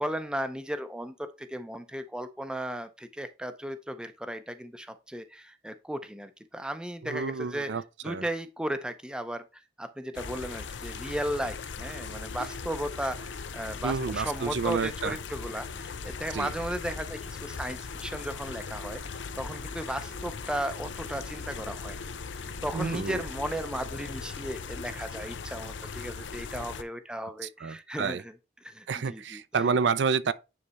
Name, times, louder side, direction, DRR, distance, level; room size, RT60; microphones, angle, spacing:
voice 1, 0.0-19.0 19.4-22.0 22.6-29.7, right 1 dB, 5° right, 0.5 m, -36 dB
voice 2, 7.0-8.2 13.8-15.1 16.3-16.5 22.7-23.2 27.6-28.2 28.9-30.3, right 5 dB, 75° right, 0.5 m, -29 dB
sound 1, 10.1-26.8, left 5 dB, 90° left, 0.6 m, -39 dB
9.6 x 3.3 x 4.0 m
head